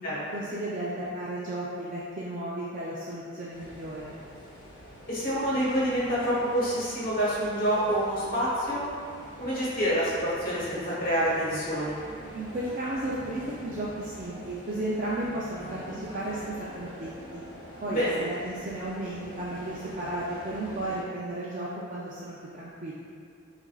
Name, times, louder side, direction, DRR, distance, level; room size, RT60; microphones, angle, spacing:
voice 1, 0.3-4.1 12.3-17.4 17.8-22.9, right 1 dB, 40° right, -7 dB, 0.4 m, -34 dB
sound 1, 3.5-21.0, equal, 25° left, 1.0 m, -45 dB
voice 2, 5.1-8.8 9.4-11.9 17.8-18.2, equal, 45° left, -8 dB, 1.2 m, -27 dB
5.8 x 2.5 x 2.3 m, 2.4 s
head